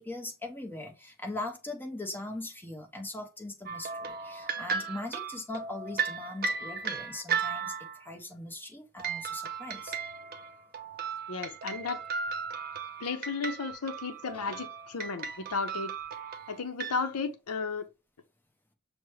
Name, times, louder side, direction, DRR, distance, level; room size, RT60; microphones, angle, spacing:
voice 1, 0.0-10.0, left 2 dB, 10° left, 0.7 m, -40 dB
sound 1, 3.7-8.1 9.0-17.0, right 5 dB, 45° right, 0.5 m, -36 dB
voice 2, 11.3-12.0 13.0-15.9 16.5-17.9, left 4 dB, 75° left, 0.7 m, -34 dB
6.0 x 2.1 x 3.1 m
head